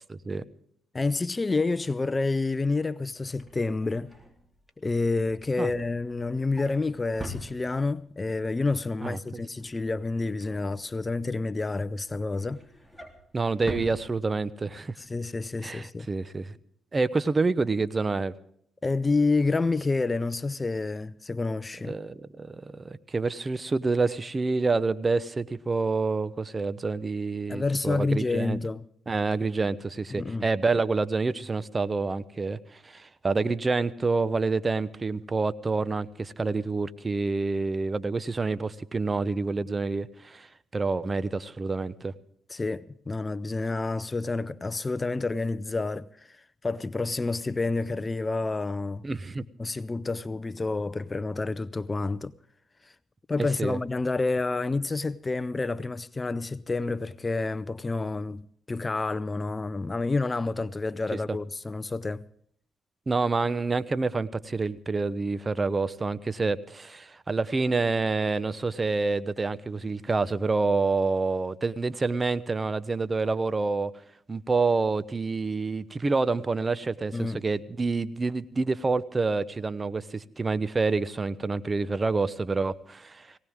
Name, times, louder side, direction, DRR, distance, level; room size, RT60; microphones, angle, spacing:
voice 1, 0.1-0.4 5.6-5.7 9.0-9.2 13.3-14.9 15.6-16.5 16.9-18.3 21.8-28.6 29.1-40.5 40.7-42.1 49.0-49.4 53.4-53.8 63.1-73.9 74.3-83.3, right 3 dB, 30° right, 0.9 m, -27 dB
voice 2, 0.9-4.1 4.8-12.6 15.0-16.1 18.8-21.9 27.5-28.8 30.1-30.4 42.5-49.0 49.6-52.3 52.8-52.9 53.3-62.3 77.1-77.4, left 3 dB, 25° left, 0.6 m, -29 dB
Drawer open or close, 3.1-8.1 8.5-8.8 9.1-11.3 11.7-14.7 15.1-15.3 15.5-15.6, equal, 5° right, 3.5 m, -45 dB
19.0 x 18.0 x 3.7 m
supercardioid pair, 65°, 0 cm